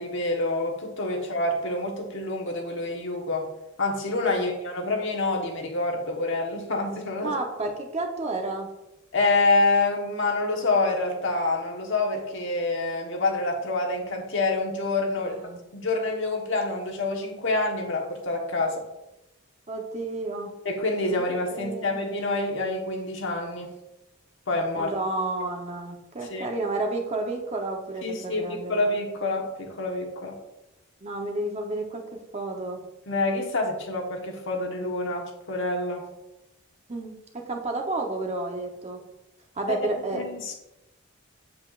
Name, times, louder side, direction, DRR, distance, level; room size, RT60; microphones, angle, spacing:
voice 1, 0.0-3.5 3.8-7.3 9.1-15.4 15.7-18.8 20.6-23.7 24.5-24.9 26.3-26.5 28.0-28.4 28.7-30.4 33.1-36.0 39.8-39.9 40.1-40.5, left 2 dB, 60° left, 1 dB, 1.3 m, -27 dB
voice 2, 7.2-8.7 15.2-15.6 19.7-20.5 21.1-21.2 21.5-22.0 24.7-28.9 31.0-32.8 36.9-39.0 39.5-40.2, right 2 dB, 30° right, 2 dB, 0.9 m, -31 dB
7.6 x 7.3 x 2.5 m, 0.93 s
head